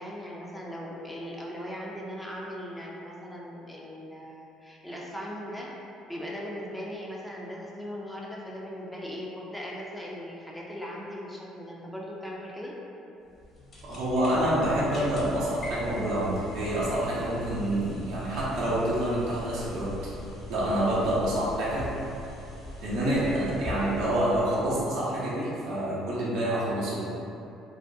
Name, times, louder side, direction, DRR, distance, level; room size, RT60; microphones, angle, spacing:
voice 1, 0.0-5.7 6.1-12.7, equal, 5° left, -4 dB, 0.4 m, -39 dB
sound 1, 13.2-25.0, left 1 dB, 40° left, 0.9 m, -41 dB
voice 2, 13.8-19.9 20.5-21.9 22.8-27.0, right 1 dB, 70° right, -8 dB, 0.7 m, -27 dB
2.3 x 2.2 x 2.6 m, 2.8 s
hypercardioid pair, 60°, 0 cm